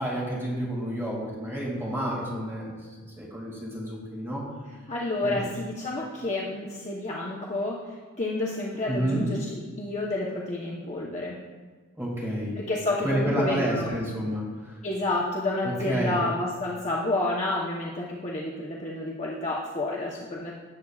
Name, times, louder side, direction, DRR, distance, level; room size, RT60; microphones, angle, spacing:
voice 1, 0.0-2.7 3.2-4.4 5.2-5.4 8.9-9.3 12.0-12.6 13.0-14.8 15.6-16.2, right 1 dB, 10° right, -5 dB, 2.4 m, -30 dB
voice 2, 4.9-9.4 9.8-11.4 12.6-13.9 14.8-20.5, left 2 dB, 30° left, -4 dB, 1.0 m, -30 dB
17.5 x 8.0 x 2.4 m, 1.4 s
head